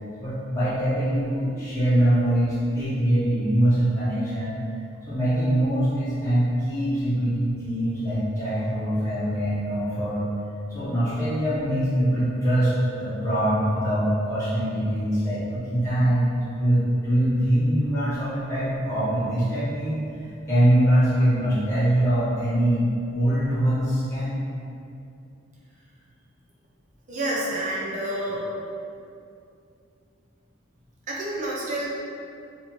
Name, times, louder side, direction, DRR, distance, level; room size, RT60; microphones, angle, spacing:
voice 1, 0.2-4.6 5.1-10.2 10.7-24.4, right 1 dB, 15° left, -14 dB, 0.7 m, -23 dB
voice 2, 27.1-28.5 31.1-31.9, right 1 dB, 40° right, -5 dB, 0.5 m, -28 dB
2.5 x 2.3 x 3.0 m, 2.5 s
head